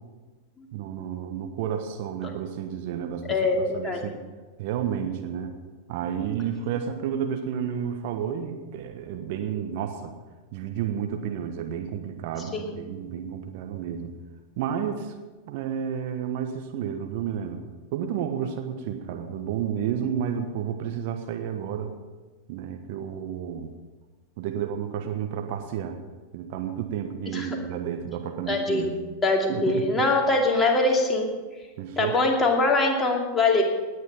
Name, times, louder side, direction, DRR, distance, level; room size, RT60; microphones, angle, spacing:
voice 1, 0.7-3.4 3.7-4.2 4.6-5.5 5.9-10.1 10.5-14.2 14.6-15.1 15.5-17.6 17.9-21.9 22.5-23.7 24.4-26.0 26.3-29.0 29.5-30.1 31.8-32.1, right 8 dB, 50° right, 5 dB, 1.3 m, -31 dB
voice 2, 3.3-4.0 12.5-12.7 27.3-27.5 28.5-28.9 29.2-31.3 32.0-33.6, left 2 dB, 15° left, 1 dB, 2.5 m, -23 dB
18.5 x 9.7 x 5.5 m, 1.3 s
figure-of-eight pair, 90°, 0 cm